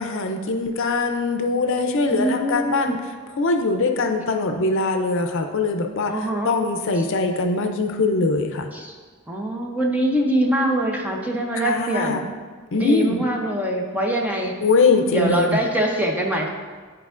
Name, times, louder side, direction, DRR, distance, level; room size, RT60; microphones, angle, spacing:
voice 1, 0.0-3.0 3.4-6.1 6.4-8.7 11.6-12.2 12.7-13.2 14.6-15.6, left 3 dB, 60° left, 5 dB, 0.5 m, -22 dB
voice 2, 2.1-2.9 6.1-6.5 8.7-9.0 9.3-12.2 12.7-14.5 15.1-16.5, right 1 dB, 10° right, 0 dB, 0.6 m, -23 dB
10.5 x 4.4 x 2.5 m, 1.5 s
head